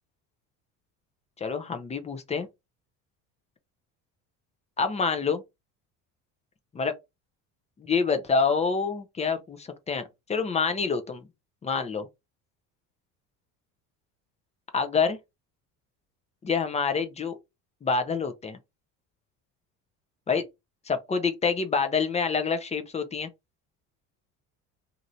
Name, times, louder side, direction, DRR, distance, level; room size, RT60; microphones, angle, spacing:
voice 1, 1.4-2.5 4.8-5.4 6.7-6.9 7.9-11.3 11.6-12.1 14.7-15.2 16.4-17.4 17.8-18.6 20.3-20.4 20.9-23.3, left 5 dB, 20° left, 0.5 m, -27 dB
3.0 x 2.5 x 2.6 m
cardioid pair, 115°, 35 cm